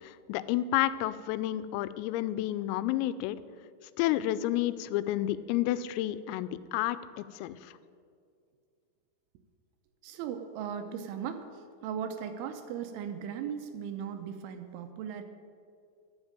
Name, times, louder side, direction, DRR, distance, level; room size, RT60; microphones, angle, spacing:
voice 1, 0.0-3.4 4.0-7.7, left 14 dB, 90° left, 14 dB, 3.2 m, -30 dB
voice 2, 10.0-15.2, right 8 dB, 80° right, 7 dB, 3.0 m, -38 dB
13.5 x 7.3 x 8.8 m, 2.3 s
omnidirectional pair, 5.9 m